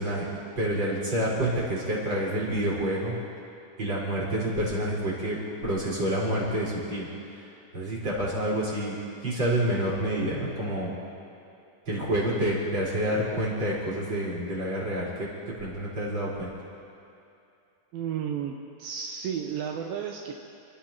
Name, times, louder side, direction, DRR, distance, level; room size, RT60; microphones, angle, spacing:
voice 1, 0.0-3.1 3.8-7.5 7.7-9.0 9.2-10.9 11.8-16.5, right 1 dB, 30° right, -7 dB, 5.1 m, -28 dB
voice 2, 17.9-20.3, right 8 dB, 80° right, 1 dB, 2.7 m, -33 dB
29.0 x 14.5 x 3.0 m, 2.6 s
omnidirectional pair, 4.2 m